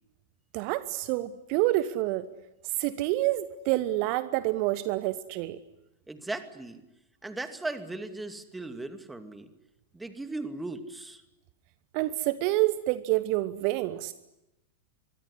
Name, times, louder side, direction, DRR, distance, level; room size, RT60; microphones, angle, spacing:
voice 1, 0.5-2.3 2.8-5.6 11.9-14.1, right 16 dB, 45° right, 14 dB, 1.1 m, -28 dB
voice 2, 6.1-6.8 7.2-9.5 9.9-11.2, right 2 dB, 10° right, 8 dB, 2.6 m, -37 dB
25.0 x 23.0 x 9.8 m, 0.91 s
figure-of-eight pair, 90°, 0 cm